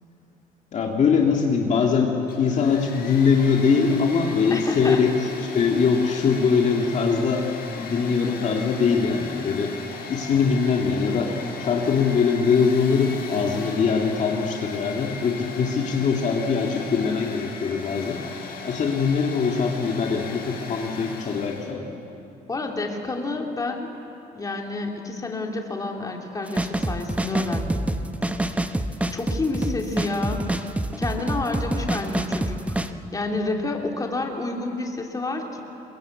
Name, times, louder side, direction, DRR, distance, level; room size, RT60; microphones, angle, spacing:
voice 1, 0.7-5.1 5.4-7.5 7.8-9.7 10.1-18.2 18.6-21.9, left 5 dB, 45° left, 0 dB, 2.2 m, -22 dB
Domestic sounds home sounds, 2.2-21.7, left 4 dB, 60° left, 4.5 m, -38 dB
voice 2, 4.5-5.0 22.5-23.9 24.3-27.9 29.1-30.4 31.0-32.8 33.1-35.6, left 2 dB, 20° left, 1 dB, 2.9 m, -29 dB
sound 1, 26.5-32.9, right 1 dB, 10° right, 0.9 m, -26 dB
22.5 x 22.0 x 8.4 m, 2.8 s
cardioid pair, 110°, 17 cm